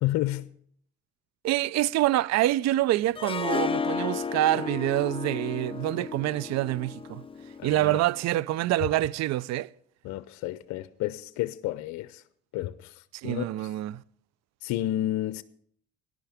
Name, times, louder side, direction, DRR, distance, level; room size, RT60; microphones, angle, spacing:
voice 1, 0.0-0.5 7.6-8.0 10.0-12.2 12.5-13.7 14.6-15.4, left 15 dB, 70° left, 0.6 m, -31 dB
voice 2, 1.4-7.2 7.6-9.7 13.1-14.0, right 15 dB, 60° right, 0.5 m, -26 dB
Harp, 3.2-8.2, left 5 dB, 20° left, 0.7 m, -33 dB
18.5 x 11.0 x 3.5 m
supercardioid pair, 65°, 30 cm